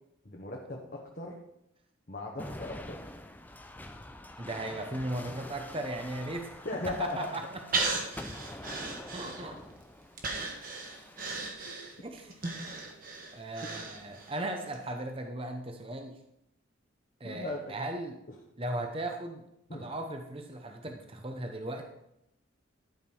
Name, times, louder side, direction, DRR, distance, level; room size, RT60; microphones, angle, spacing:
voice 1, 0.2-1.4 2.1-3.0 6.6-7.3 11.6-11.7 17.2-17.8 19.7-19.9, left 2 dB, 40° left, -2 dB, 1.2 m, -37 dB
sound 1, 2.4-11.8 12.4-13.0 14.1-14.8, left 1 dB, 10° left, 0.5 m, -46 dB
voice 2, 4.4-8.0 8.9-9.6 12.0-12.4 13.3-16.1 17.2-18.2 18.6-19.4 19.7-21.9, right 1 dB, 25° right, 4 dB, 0.8 m, -37 dB
Breathing, 7.7-9.7 10.2-14.4 14.7-14.8, right 3 dB, 40° right, 1.4 m, -36 dB
11.5 x 5.1 x 5.4 m, 0.81 s
head